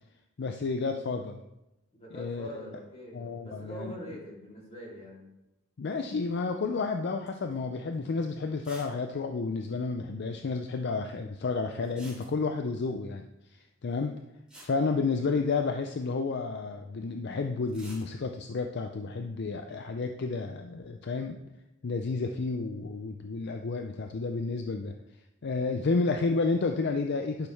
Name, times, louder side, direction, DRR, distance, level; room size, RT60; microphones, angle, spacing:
voice 1, 0.4-1.4 2.2-2.6 3.1-3.9 5.8-14.1 14.6-21.4 21.8-24.9 25.4-27.5, left 4 dB, 60° left, 5 dB, 0.5 m, -31 dB
voice 2, 1.9-5.3, equal, 30° left, -5 dB, 3.1 m, -44 dB
sound 1, 7.3-7.5 7.9-8.0 8.6-9.0 9.2-9.3 9.5-9.6 11.8-12.7 14.1-14.2 14.5-15.7 17.6-18.1, right 1 dB, 5° right, 3.6 m, -50 dB
11.5 x 6.3 x 3.4 m, 0.93 s
head